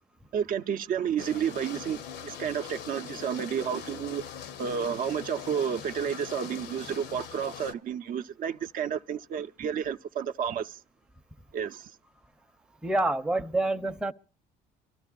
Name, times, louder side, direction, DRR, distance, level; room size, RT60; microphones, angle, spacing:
voice 1, 0.3-4.2 4.6-10.8 11.5-11.9, right 8 dB, 55° right, 0.5 m, -31 dB
sound 1, 1.2-7.7, left 8 dB, 80° left, 0.8 m, -42 dB
voice 2, 12.8-14.1, right 2 dB, 5° right, 0.6 m, -27 dB
26.0 x 13.0 x 2.3 m
cardioid pair, 110°, 17 cm